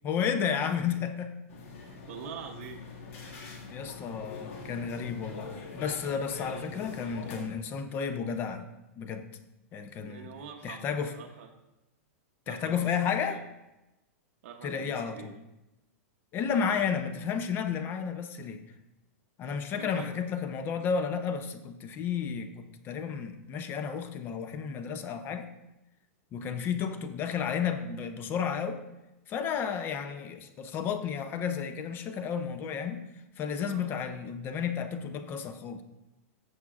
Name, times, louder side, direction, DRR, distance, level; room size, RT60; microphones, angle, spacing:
voice 1, 0.0-1.4 3.7-8.7 9.0-9.2 9.7-10.3 10.6-11.1 12.5-13.4 14.6-15.3 16.3-18.6 19.4-25.5 26.3-28.8 29.3-33.0 33.4-35.8, left 7 dB, 25° left, 8 dB, 0.7 m, -32 dB
sound 1, 1.5-7.4, left 4 dB, 65° left, 2.1 m, -43 dB
voice 2, 2.1-2.8 3.8-3.9 10.0-11.5 12.5-13.4 14.4-15.3 19.8-20.2 26.4-26.7 33.6-33.9, right 7 dB, 55° right, 2 dB, 0.9 m, -45 dB
14.0 x 7.2 x 2.5 m, 0.96 s
hypercardioid pair, 145°, 8 cm